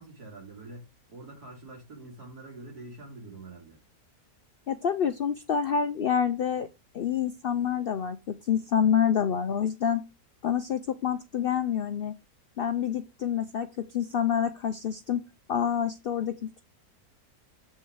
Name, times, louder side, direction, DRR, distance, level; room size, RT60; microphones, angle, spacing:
voice 1, 0.0-3.8, right 2 dB, 80° right, 3.1 m, -45 dB
voice 2, 4.7-6.7 6.9-10.0 10.4-12.1 12.6-15.2 15.5-16.6, left 8 dB, 80° left, 0.5 m, -27 dB
7.5 x 4.3 x 4.6 m
omnidirectional pair, 1.6 m